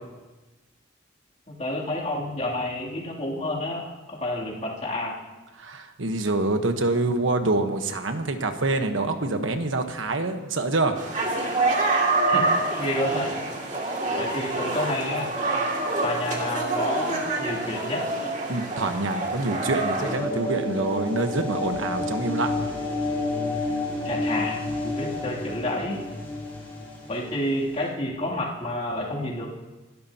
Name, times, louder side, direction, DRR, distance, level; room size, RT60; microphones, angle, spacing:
voice 1, 1.5-5.2 12.3-12.5 12.8-13.4 14.2-15.3 16.0-18.1 24.0-26.0 27.1-29.5, left 1 dB, 35° left, -5 dB, 2.9 m, -29 dB
voice 2, 5.6-10.9 18.5-22.7, right 2 dB, 85° right, 7 dB, 1.2 m, -26 dB
sound 1, 10.9-20.1, right 2 dB, 40° right, 2.4 m, -26 dB
sound 2, 20.0-27.9, left 2 dB, 10° left, 6.2 m, -30 dB
29.5 x 12.5 x 2.9 m, 1.2 s
head